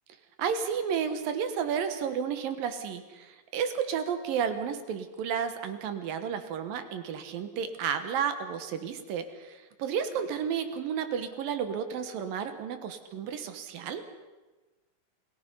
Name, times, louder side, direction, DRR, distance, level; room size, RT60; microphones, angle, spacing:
voice 1, 0.4-14.0, right 7 dB, 80° right, 9 dB, 3.0 m, -32 dB
28.5 x 18.0 x 5.5 m, 1.2 s
omnidirectional pair, 4.1 m